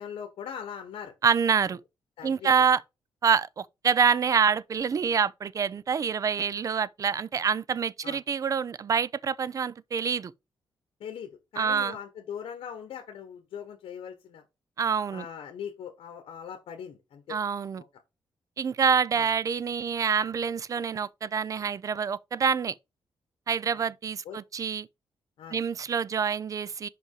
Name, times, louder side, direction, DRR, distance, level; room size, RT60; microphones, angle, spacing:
voice 1, 0.0-1.1 2.2-2.7 8.0-8.2 11.0-14.4 15.1-17.4 17.8-17.9 19.1-19.3 24.2-24.4 25.4-25.6, left 8 dB, 80° left, 1.3 m, -40 dB
voice 2, 1.2-1.8 2.2-2.8 3.2-10.3 11.6-12.0 14.8-15.2 17.3-17.8 18.6-22.7 23.5-24.9 25.5-26.9, right 6 dB, 35° right, 0.4 m, -26 dB
5.3 x 5.3 x 4.7 m
cardioid pair, 140°, 9 cm